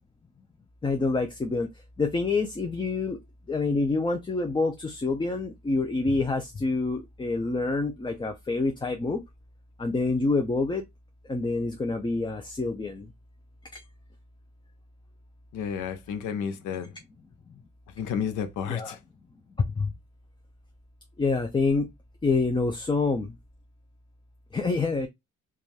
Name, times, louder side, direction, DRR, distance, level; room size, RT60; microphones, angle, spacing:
voice 1, 0.8-1.7 2.0-3.2 3.5-9.2 9.8-10.8 11.3-13.1 13.7-13.8 18.7-19.0 19.8-19.9 21.2-21.9 22.2-23.4 24.5-25.1, left 3 dB, 15° left, 0.4 m, -27 dB
voice 2, 15.5-16.9 18.0-19.0, left 7 dB, 85° left, 0.6 m, -31 dB
2.5 x 2.3 x 3.1 m
cardioid pair, 90°, 30 cm